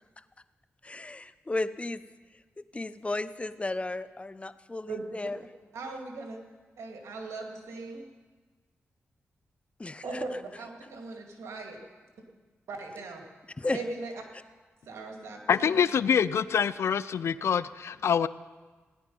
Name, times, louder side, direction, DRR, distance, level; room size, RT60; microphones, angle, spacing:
voice 1, 0.8-2.0 2.6-5.4 9.8-10.3 13.6-13.8, left 2 dB, 25° left, 14 dB, 0.6 m, -34 dB
voice 2, 4.9-5.3 5.7-6.4 6.8-8.1 10.0-11.8 12.7-13.2 13.7-14.1 14.9-15.8, right 3 dB, 85° right, 2 dB, 2.1 m, -39 dB
voice 3, 15.5-18.3, left 7 dB, 70° left, 17 dB, 0.4 m, -25 dB
17.0 x 10.5 x 5.4 m, 1.4 s
cardioid pair, 55°, 5 cm